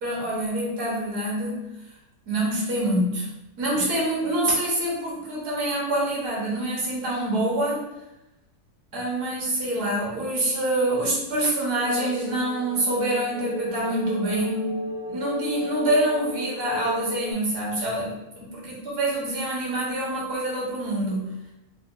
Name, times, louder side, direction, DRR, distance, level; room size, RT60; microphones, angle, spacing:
voice 1, 0.0-1.6 2.3-3.3 3.6-7.8 8.9-14.8 15.1-21.3, right 1 dB, 85° right, -5 dB, 1.8 m, -26 dB
sound 1, 11.8-17.3, right 1 dB, 75° left, 1.4 m, -34 dB
4.2 x 2.3 x 3.6 m, 0.93 s
omnidirectional pair, 1.6 m